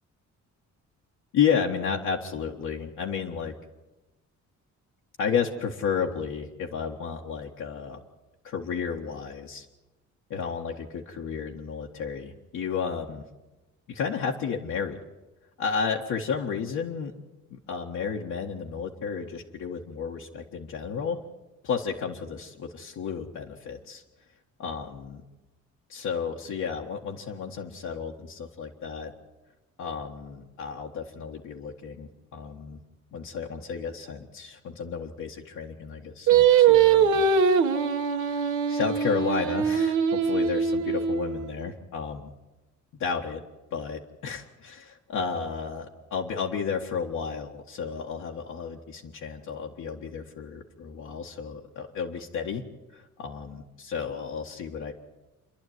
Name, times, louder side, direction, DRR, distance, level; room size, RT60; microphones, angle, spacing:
voice 1, 1.3-3.5 5.2-8.0 8.4-9.7 10.3-13.2 13.9-15.0 15.6-17.1 17.5-21.2 21.6-24.0 24.6-25.2 25.9-29.1 29.8-32.8 33.1-37.3 38.3-38.4 38.7-42.3 43.0-43.4 43.7-52.6 52.9-54.9, left 6 dB, 75° left, -2 dB, 1.7 m, -32 dB
Singing, 36.3-41.6, right 7 dB, 80° right, 1.4 m, -22 dB
28.0 x 11.0 x 9.4 m, 1.1 s
cardioid pair, 90°, 30 cm